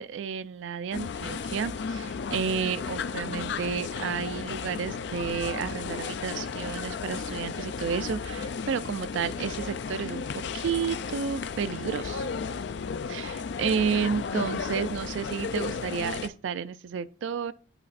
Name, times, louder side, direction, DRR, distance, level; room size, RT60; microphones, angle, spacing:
voice 1, 0.0-12.3 13.1-17.5, right 7 dB, 75° right, 0.3 m, -31 dB
sound 1, 0.9-16.3, left 5 dB, 60° left, 0.4 m, -34 dB
8.9 x 3.3 x 4.1 m
head